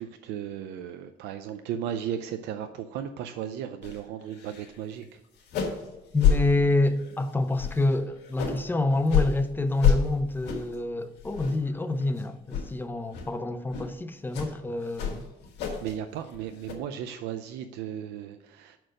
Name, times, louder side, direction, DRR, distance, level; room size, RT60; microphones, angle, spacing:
voice 1, 0.0-5.2 15.8-18.8, right 9 dB, 85° right, 0.5 m, -35 dB
sound 1, 3.8-4.0 4.3-4.7 5.0-5.1 5.4-5.9 6.2-6.4 6.9-7.2 7.6-8.6 9.1-9.3 9.8-10.0 10.4-10.8 11.2-11.7 12.0-12.2 12.5-12.7 13.1-13.3 13.7-13.9 14.3-14.5 14.9-15.9 16.2-16.7, left 8 dB, 80° left, 1.8 m, -27 dB
voice 2, 6.1-15.2, left 2 dB, 10° left, 0.5 m, -27 dB
6.2 x 4.5 x 6.3 m
cardioid pair, 110°, 17 cm